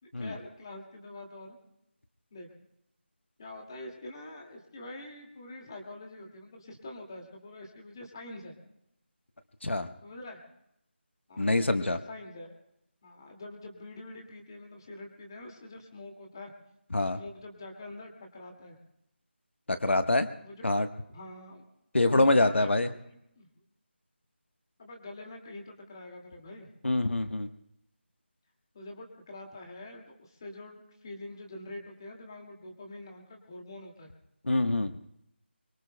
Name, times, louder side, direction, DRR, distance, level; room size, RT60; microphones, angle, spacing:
voice 1, 0.0-1.6 2.3-2.5 3.4-8.5 10.0-10.4 11.3-12.5 13.0-16.5 17.2-18.8 19.7-19.8 20.4-20.7 21.1-21.6 22.1-23.5 24.8-26.7 28.7-34.1, left 2 dB, 20° left, 2 dB, 2.1 m, -45 dB
voice 2, 11.4-12.0 16.9-17.2 19.7-20.3 20.6-20.9 21.9-22.9 26.8-27.5 34.4-34.9, left 2 dB, 85° left, 9 dB, 1.2 m, -25 dB
26.5 x 23.5 x 2.2 m, 0.79 s
figure-of-eight pair, 175°, 6 cm